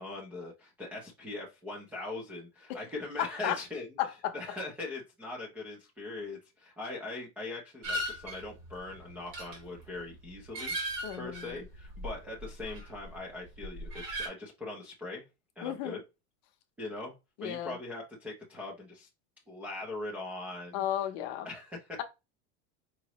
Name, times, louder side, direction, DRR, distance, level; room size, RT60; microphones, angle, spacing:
voice 1, 0.0-3.9 4.3-15.2 15.6-16.0 16.8-17.1 17.4-19.1 19.5-20.8 21.4-21.9, left 2 dB, 5° right, 0.4 m, -41 dB
voice 2, 3.2-3.6 4.0-4.3 11.0-11.5 15.6-16.0 17.4-17.8 20.7-21.5, left 11 dB, 40° left, 0.7 m, -33 dB
sound 1, 7.8-13.2 13.5-14.3, equal, 40° right, 1.7 m, -39 dB
4.8 x 3.0 x 2.9 m
supercardioid pair, 180°, 33 cm